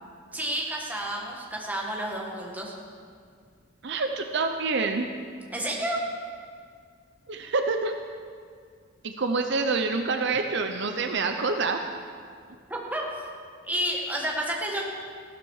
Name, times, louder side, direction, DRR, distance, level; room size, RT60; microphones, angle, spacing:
voice 1, 0.3-2.7 5.5-6.0 12.7-13.0 13.6-14.8, right 1 dB, 10° right, -2 dB, 1.8 m, -30 dB
voice 2, 3.8-5.1 7.3-8.0 9.0-11.8, right 4 dB, 55° right, 6 dB, 0.7 m, -27 dB
15.0 x 12.5 x 4.9 m, 2.1 s
head